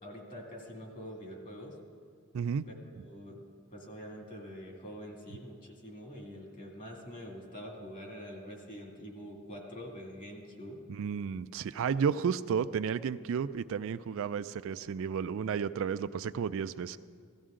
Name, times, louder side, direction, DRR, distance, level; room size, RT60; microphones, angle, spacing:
voice 1, 0.0-1.8 2.7-3.4 3.7-10.8, equal, 40° left, 0 dB, 2.3 m, -45 dB
voice 2, 2.3-2.7 10.9-17.0, right 6 dB, 65° right, 13 dB, 0.3 m, -32 dB
16.5 x 14.0 x 3.7 m, 2.1 s
head